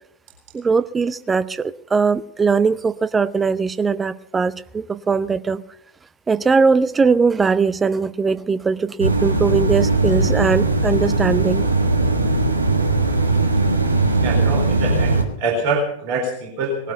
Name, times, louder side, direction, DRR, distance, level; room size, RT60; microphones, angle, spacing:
voice 1, 0.5-5.6 6.3-11.7, right 5 dB, 15° right, 0.6 m, -20 dB
sound 1, 9.0-15.2, right 2 dB, 80° right, 1.6 m, -19 dB
voice 2, 14.2-16.9, right 2 dB, 50° right, 4.1 m, -25 dB
20.0 x 12.0 x 5.5 m
figure-of-eight pair, 90°, 0 cm